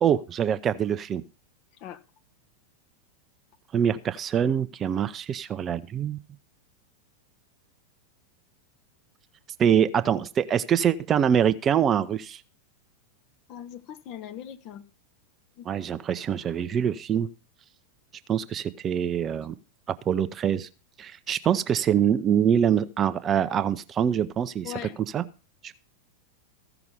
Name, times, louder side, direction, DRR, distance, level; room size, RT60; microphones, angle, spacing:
voice 1, 0.0-1.2 3.7-6.2 9.6-12.4 15.7-17.3 18.3-19.6 20.1-20.7 21.0-24.7 25.1-25.2 25.6-25.8, right 8 dB, 25° right, 0.6 m, -24 dB
voice 2, 13.5-14.8 15.6-15.7 24.6-25.0, left 10 dB, 40° left, 1.1 m, -40 dB
15.0 x 5.9 x 5.2 m
figure-of-eight pair, 90°, 0 cm